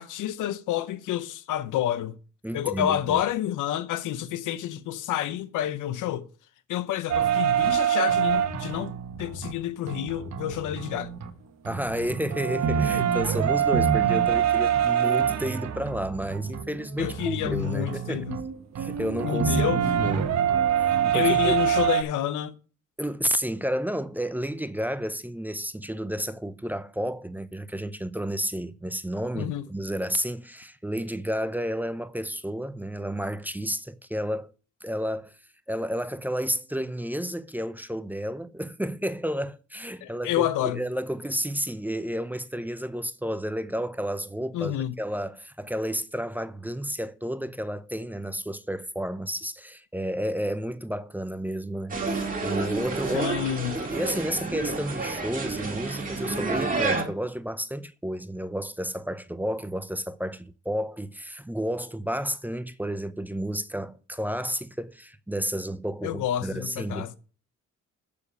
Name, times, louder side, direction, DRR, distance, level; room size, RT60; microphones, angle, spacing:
voice 1, 0.0-2.1 2.5-6.3 6.7-8.9 9.2-11.1 17.0-18.4 19.2-20.0 21.1-22.5 29.3-29.7 40.0-40.8 44.5-45.0 53.1-53.8 66.0-67.2, left 12 dB, 80° left, 0.8 m, -29 dB
voice 2, 2.4-3.2 11.6-18.3 18.8-20.3 20.8-21.6 23.0-34.5 34.8-35.3 35.7-53.3 53.7-67.2, equal, 5° right, 0.6 m, -31 dB
sound 1, 7.1-9.5 9.9-11.3 11.6-22.0, right 9 dB, 60° right, 1.2 m, -25 dB
sound 2, 51.9-57.0, right 3 dB, 25° right, 2.3 m, -29 dB
6.9 x 6.8 x 6.8 m
cardioid pair, 90°, 30 cm